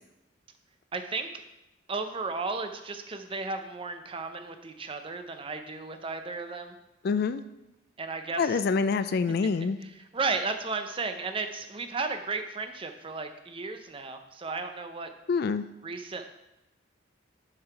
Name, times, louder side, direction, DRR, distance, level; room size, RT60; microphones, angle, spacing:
voice 1, 0.9-1.3 1.9-6.8 8.0-8.6 10.1-15.1 15.8-16.3, right 3 dB, 25° right, 7 dB, 0.5 m, -34 dB
voice 2, 7.0-7.4 8.4-9.8 15.3-15.6, left 5 dB, 50° left, 12 dB, 0.3 m, -26 dB
6.6 x 5.6 x 4.6 m, 0.93 s
head